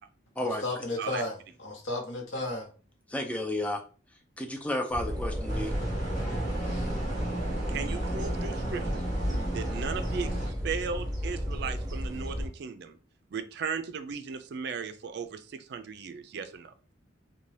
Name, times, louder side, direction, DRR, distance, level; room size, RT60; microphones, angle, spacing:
voice 1, 0.4-2.7, left 2 dB, 80° left, 0.8 m, -34 dB
voice 2, 3.1-3.8 4.4-5.7, left 1 dB, 5° left, 0.4 m, -31 dB
sound 1, 4.9-12.5, equal, 20° right, 0.8 m, -33 dB
sound 2, 5.5-10.5, right 1 dB, 40° left, 1.0 m, -34 dB
voice 3, 7.7-9.0 9.5-13.0 13.3-16.7, right 5 dB, 60° right, 0.4 m, -36 dB
2.7 x 2.2 x 3.2 m
head